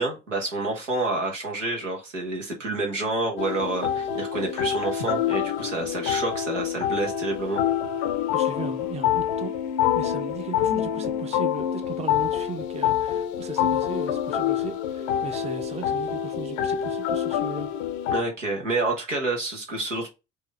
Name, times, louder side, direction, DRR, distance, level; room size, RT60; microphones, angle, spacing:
voice 1, 0.0-7.6 18.1-20.1, right 2 dB, 85° right, 1.1 m, -28 dB
sound 1, 3.4-18.2, left 9 dB, 65° left, 0.6 m, -26 dB
voice 2, 8.3-9.6 9.9-17.7, right 5 dB, 20° right, 0.6 m, -37 dB
4.7 x 2.6 x 3.2 m
figure-of-eight pair, 50°, 36 cm